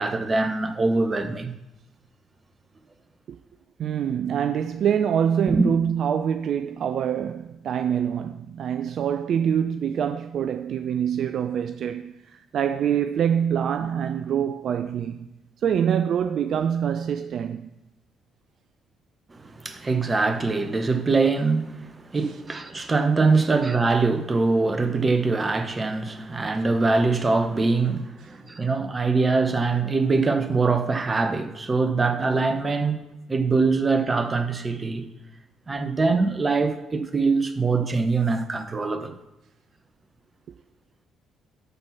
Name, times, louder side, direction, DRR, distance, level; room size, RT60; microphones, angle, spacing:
voice 1, 0.0-1.5 5.5-5.6 19.3-33.0 33.3-35.1 35.7-39.1, right 3 dB, 30° right, 1.1 m, -23 dB
voice 2, 3.8-15.3 15.6-17.7 22.3-22.4 23.3-23.5 28.2-28.3, right 8 dB, 60° right, 0.3 m, -25 dB
12.5 x 4.5 x 5.8 m
hypercardioid pair, 45°, 0 cm